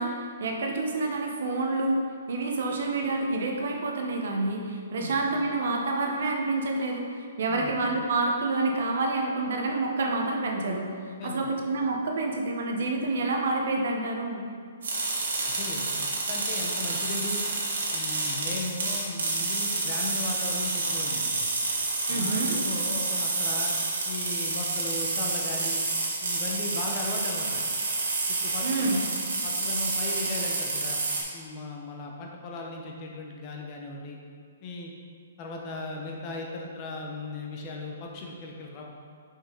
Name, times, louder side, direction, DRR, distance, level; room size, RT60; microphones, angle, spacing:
voice 1, 0.0-2.0 2.3-10.9 11.2-14.5 22.1-22.6 28.6-29.0, right 2 dB, 55° right, 1 dB, 1.0 m, -28 dB
voice 2, 11.2-11.5 15.5-17.4 17.9-21.5 22.1-23.7 24.1-25.8 26.2-27.6 28.3-29.1 29.4-31.0 31.3-34.2 34.6-34.9 35.4-38.8, left 2 dB, 25° left, 0 dB, 0.7 m, -37 dB
sound 1, 14.8-31.2, right 3 dB, 75° right, 1.8 m, -29 dB
6.9 x 5.5 x 3.9 m, 2.2 s
hypercardioid pair, 175°, 0 cm